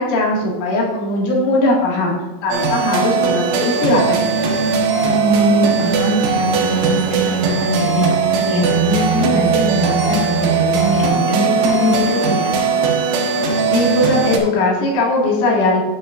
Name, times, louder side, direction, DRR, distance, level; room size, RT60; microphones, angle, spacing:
voice 1, 0.0-2.2 2.4-4.6 13.7-15.8, left 2 dB, 85° left, -3 dB, 4.6 m, -19 dB
sound 1, 2.5-14.4, right 5 dB, 85° right, 3.8 m, -18 dB
voice 2, 5.0-12.5, equal, 40° left, -4 dB, 2.9 m, -21 dB
11.0 x 8.9 x 2.6 m, 1.2 s
omnidirectional pair, 5.3 m